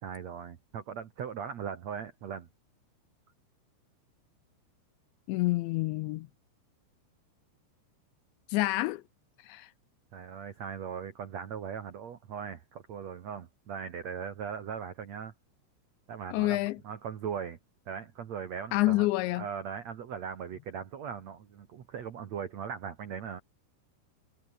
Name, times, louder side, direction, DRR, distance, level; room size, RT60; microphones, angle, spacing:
voice 1, 0.0-2.5 10.1-15.3 16.1-17.6 17.8-19.1 19.4-23.4, right 7 dB, 80° right, 1.5 m, -39 dB
voice 2, 5.3-6.3 8.5-9.0 9.4-9.7 16.3-16.8 18.7-19.5, left 19 dB, 85° left, 2.7 m, -28 dB
omnidirectional pair, 5.7 m